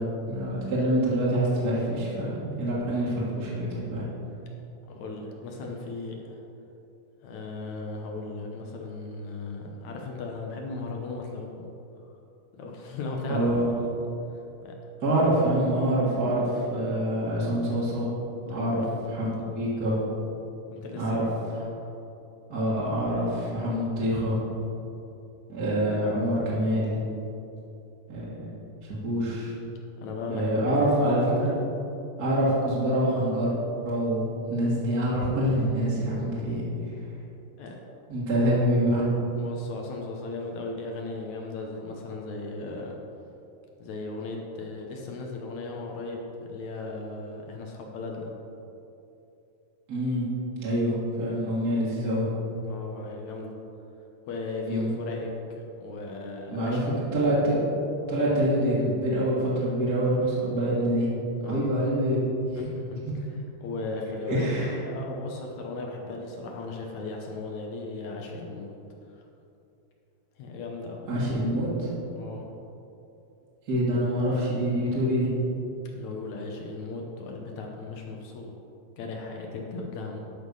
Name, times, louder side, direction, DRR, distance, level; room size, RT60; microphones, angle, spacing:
voice 1, 0.0-4.1 13.2-13.7 15.0-18.1 18.5-19.3 19.5-20.0 21.0-21.3 22.5-24.4 25.5-27.0 28.1-28.5 29.0-29.5 30.3-31.5 32.2-33.5 33.8-36.6 38.1-39.0 49.9-50.3 50.6-52.3 54.7-54.9 56.5-56.8 57.1-57.6 58.1-61.1 61.5-62.2 63.1-63.2 64.3-64.7 71.1-71.9 73.7-75.3, right 1 dB, 35° right, -7 dB, 1.8 m, -26 dB
voice 2, 4.9-6.4 7.2-11.7 12.5-13.9 14.6-14.7 18.5-19.1 20.7-21.3 30.0-30.8 37.6-37.8 39.4-43.0 43.8-48.3 52.7-53.5 54.3-55.3 55.7-56.9 61.4-61.7 62.6-63.3 63.6-68.7 69.1-69.2 70.4-71.1 72.2-72.4 75.9-78.5 79.0-80.2, left 3 dB, 70° left, 0 dB, 2.2 m, -36 dB
11.5 x 5.8 x 5.4 m, 2.8 s
omnidirectional pair, 3.8 m